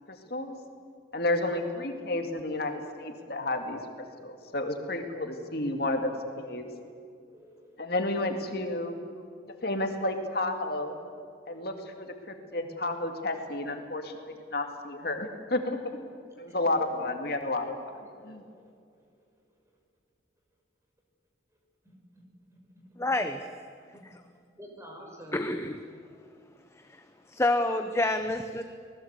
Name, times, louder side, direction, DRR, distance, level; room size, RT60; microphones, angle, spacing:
voice 1, 1.1-3.8 4.2-6.7 7.8-9.0 9.6-11.0 11.5-15.8 16.4-17.9 18.2-18.4, left 2 dB, 60° left, 4 dB, 2.2 m, -31 dB
voice 2, 2.5-2.9 3.4-3.5 6.7-6.9 7.3-7.8 9.5-9.9 10.8-11.1 11.4-11.6 13.9-14.0 16.5-16.7 18.0-18.4 23.9-24.0 24.6-25.5, equal, 15° right, 0 dB, 5.7 m, -50 dB
voice 3, 23.0-23.4 24.0-24.1 25.3-25.8 26.9-27.0 27.3-28.6, left 2 dB, 15° left, 8 dB, 0.9 m, -28 dB
25.5 x 19.5 x 8.2 m, 2.3 s
head